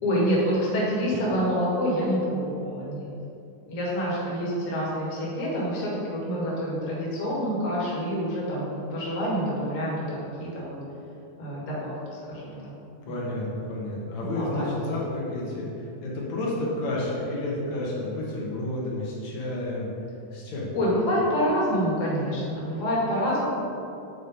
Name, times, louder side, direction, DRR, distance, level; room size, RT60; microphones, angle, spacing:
voice 1, 0.0-3.1 3.7-10.8 11.4-12.7 13.0-13.3 14.3-14.8 20.7-23.4, equal, 30° left, -7 dB, 1.6 m, -27 dB
voice 2, 13.1-15.6 16.0-19.9 20.3-20.7, left 1 dB, 65° left, -4 dB, 2.2 m, -30 dB
7.9 x 4.1 x 5.1 m, 2.7 s
omnidirectional pair, 3.8 m